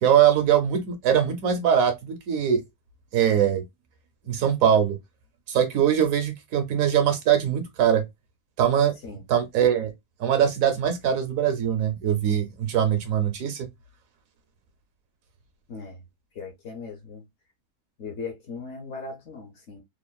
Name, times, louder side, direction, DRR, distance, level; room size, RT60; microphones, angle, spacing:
voice 1, 0.0-2.6 3.1-3.6 4.2-5.0 5.5-8.0 8.6-8.9 9.3-9.9 10.2-13.7, right 9 dB, 70° right, 0.9 m, -22 dB
voice 2, 15.7-16.0 16.3-17.3 18.0-19.8, left 4 dB, 60° left, 0.9 m, -38 dB
3.1 x 2.0 x 2.2 m
omnidirectional pair, 1.6 m